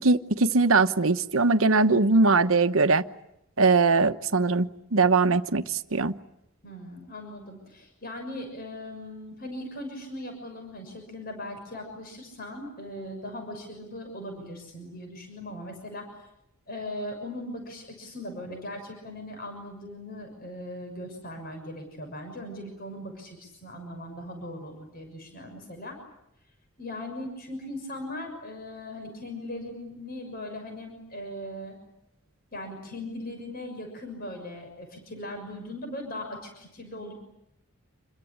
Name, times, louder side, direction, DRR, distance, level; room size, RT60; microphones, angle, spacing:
voice 1, 0.0-3.0 3.6-6.2, right 3 dB, 75° right, 1.1 m, -21 dB
voice 2, 6.6-16.1 16.7-26.0 26.8-31.8 32.5-37.1, left 1 dB, 45° left, 6.5 m, -39 dB
28.0 x 22.5 x 8.8 m
head